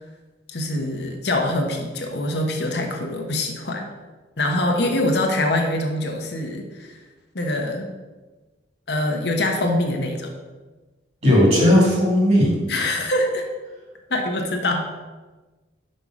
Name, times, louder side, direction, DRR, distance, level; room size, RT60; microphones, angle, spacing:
voice 1, 0.5-3.9 4.4-6.9 7.3-7.9 8.9-10.3 12.7-13.5 14.1-14.9, left 1 dB, 65° left, 2 dB, 1.0 m, -24 dB
voice 2, 11.2-12.6, left 1 dB, 35° right, -3 dB, 2.5 m, -16 dB
5.6 x 5.3 x 6.1 m, 1.2 s
head